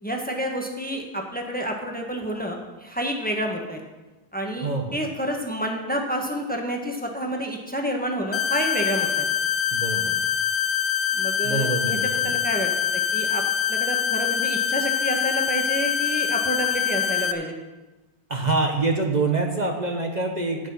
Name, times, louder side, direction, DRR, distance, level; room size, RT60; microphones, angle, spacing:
voice 1, 0.0-3.8 4.3-9.3 11.1-13.4 13.7-17.5, equal, 10° left, 1 dB, 1.4 m, -29 dB
voice 2, 4.6-5.0 9.7-10.2 11.4-12.3 18.3-20.7, right 3 dB, 45° right, 2 dB, 1.2 m, -25 dB
sound 1, 8.3-17.3, left 8 dB, 60° left, 0.9 m, -24 dB
16.5 x 6.4 x 5.7 m, 1.1 s
omnidirectional pair, 1.1 m